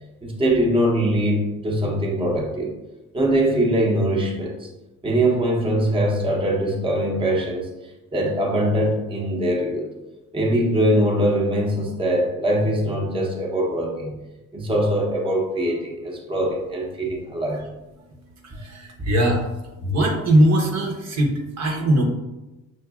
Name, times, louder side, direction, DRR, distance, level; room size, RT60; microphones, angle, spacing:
voice 1, 0.2-2.7 3.1-4.7 5.0-7.7 8.1-9.9 10.3-14.1 14.5-17.6, right 1 dB, 15° right, -1 dB, 0.8 m, -22 dB
voice 2, 18.5-19.4 19.8-22.0, right 1 dB, 60° right, 0 dB, 0.9 m, -20 dB
5.9 x 2.5 x 2.3 m, 1.1 s
cardioid pair, 90°, 30 cm